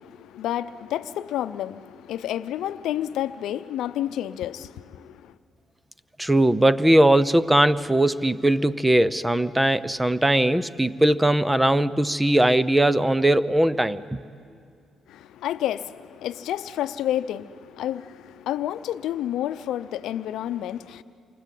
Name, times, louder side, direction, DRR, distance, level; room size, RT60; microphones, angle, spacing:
voice 1, 0.0-5.3 15.1-21.0, left 12 dB, 80° left, 0.7 m, -30 dB
voice 2, 6.2-14.2, right 1 dB, 10° right, 0.7 m, -20 dB
28.5 x 24.0 x 8.5 m
cardioid pair, 90°, 0 cm